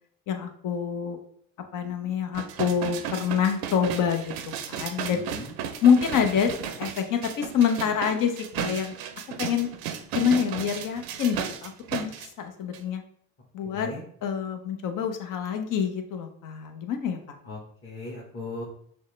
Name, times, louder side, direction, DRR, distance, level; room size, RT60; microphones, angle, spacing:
voice 1, 0.3-1.2 1.7-4.3 4.7-5.2 5.8-6.5 6.8-9.0 9.4-9.7 10.1-13.0 13.5-13.9 14.2-17.4, left 7 dB, 60° left, 6 dB, 0.8 m, -26 dB
sound 1, 2.3-12.3 12.7-12.8, right 8 dB, 85° right, 0.6 m, -35 dB
voice 2, 5.1-5.5 13.6-14.0 17.4-18.6, left 2 dB, 35° left, -5 dB, 1.4 m, -38 dB
6.2 x 2.1 x 3.2 m, 0.63 s
cardioid pair, 95°, 36 cm